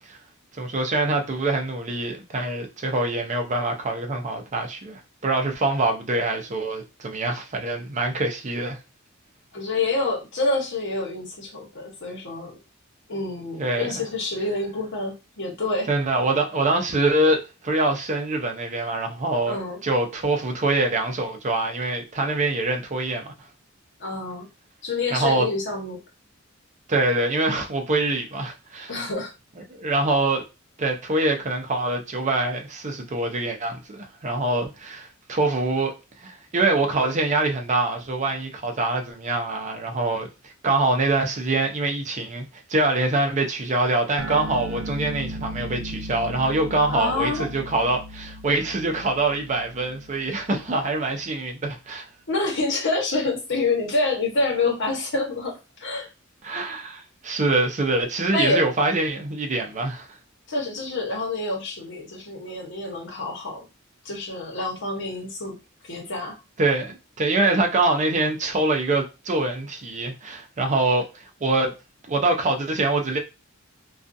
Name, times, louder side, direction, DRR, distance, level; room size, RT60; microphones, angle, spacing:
voice 1, 0.6-8.8 13.6-14.0 15.9-23.3 25.1-25.5 26.9-28.9 29.6-30.4 30.8-35.9 36.2-52.1 56.4-60.1 66.6-71.7 72.1-73.2, right 2 dB, 35° right, 0.5 m, -24 dB
voice 2, 9.5-12.6 13.1-15.9 19.5-19.8 24.0-24.5 24.8-26.0 28.9-29.3 46.9-47.5 52.3-56.1 58.3-58.7 60.5-63.6 64.0-65.5 65.8-66.4, left 3 dB, 60° left, 1.0 m, -27 dB
sound 1, 44.2-51.0, right 1 dB, 90° right, 0.4 m, -37 dB
2.4 x 2.3 x 2.6 m
head